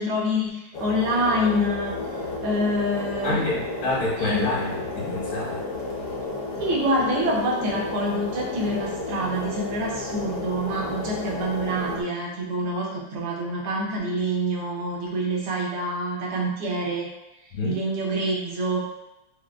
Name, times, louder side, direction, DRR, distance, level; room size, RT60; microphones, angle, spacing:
voice 1, 0.0-1.9 2.4-3.5 4.2-4.5 6.6-17.1 17.6-18.8, equal, 80° right, -3 dB, 1.7 m, -26 dB
sound 1, 0.7-12.0, left 3 dB, 65° left, 0.8 m, -32 dB
voice 2, 3.2-5.7 17.5-17.8, left 2 dB, 80° left, -5 dB, 2.1 m, -27 dB
6.2 x 2.2 x 2.3 m, 0.93 s
omnidirectional pair, 2.4 m